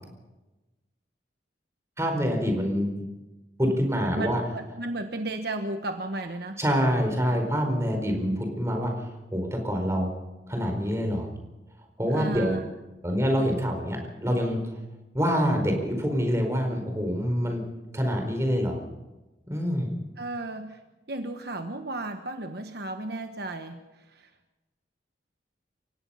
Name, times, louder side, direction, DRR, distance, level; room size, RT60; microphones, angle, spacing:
voice 1, 2.0-3.0 3.6-4.4 6.6-9.0 9.3-10.1 10.5-11.3 12.0-12.6 13.0-14.6 15.1-17.6 17.9-18.8 19.5-19.9, equal, 15° right, 3 dB, 4.4 m, -26 dB
voice 2, 4.1-6.6 12.1-12.6 20.2-20.8 21.1-23.8 24.1-24.3, right 2 dB, 55° right, 6 dB, 1.3 m, -34 dB
29.0 x 17.0 x 5.7 m, 1.1 s
head